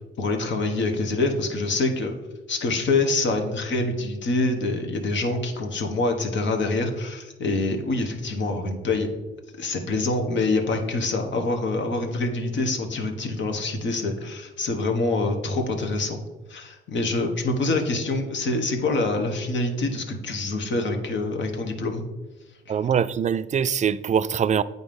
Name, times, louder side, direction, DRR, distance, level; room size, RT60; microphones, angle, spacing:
voice 1, 0.2-2.1 2.5-9.1 9.6-16.2 16.5-22.0, left 2 dB, 65° left, 1.4 m, -25 dB
voice 2, 22.7-24.6, right 8 dB, 35° right, 0.4 m, -23 dB
8.8 x 4.1 x 5.4 m
cardioid pair, 75°, 20 cm